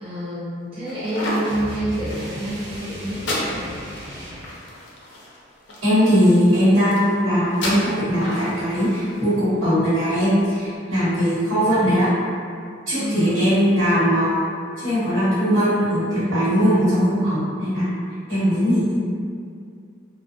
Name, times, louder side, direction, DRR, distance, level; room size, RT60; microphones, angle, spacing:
voice 1, 0.0-3.8 10.9-11.3 12.9-13.4, right 1 dB, 25° right, -9 dB, 0.3 m, -28 dB
sound 1, 0.9-10.4, left 1 dB, 60° left, 0.5 m, -33 dB
sound 2, 1.4-4.5, equal, 60° right, 1.1 m, -35 dB
voice 2, 5.8-12.2 12.9-14.4 14.8-17.9 18.3-19.0, equal, 85° right, -14 dB, 1.1 m, -19 dB
2.6 x 2.2 x 2.5 m, 2.3 s
head